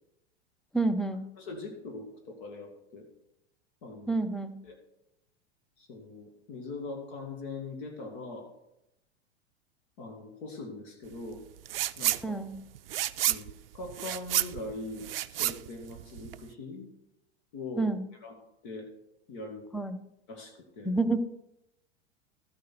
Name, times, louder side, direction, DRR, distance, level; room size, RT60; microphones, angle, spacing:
voice 1, 0.7-1.3 4.1-4.6 12.2-12.6 17.8-18.0 19.7-20.0 20.8-21.2, right 3 dB, ahead, 10 dB, 0.5 m, -29 dB
voice 2, 1.4-3.1 3.8-4.2 4.6-4.8 5.8-8.5 10.0-11.4 12.0-12.4 13.3-13.5 13.7-16.9 17.5-17.9 18.2-18.4 18.6-18.9 19.3-19.6 20.3-20.9, left 3 dB, 50° left, 3 dB, 1.9 m, -41 dB
sound 1, 11.7-12.2 12.5-16.5, right 13 dB, 60° right, 0.5 m, -30 dB
12.5 x 8.3 x 4.5 m, 0.84 s
figure-of-eight pair, 90°, 33 cm